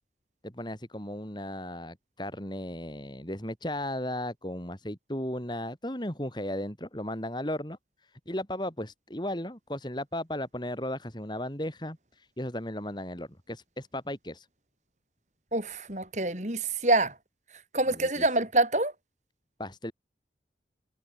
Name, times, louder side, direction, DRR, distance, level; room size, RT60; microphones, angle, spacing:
voice 1, 0.4-7.8 8.3-14.5 17.9-18.3 19.6-19.9, left 1 dB, 25° left, 4.0 m, -35 dB
voice 2, 15.5-17.1 17.7-18.9, right 2 dB, 40° right, 6.3 m, -26 dB
head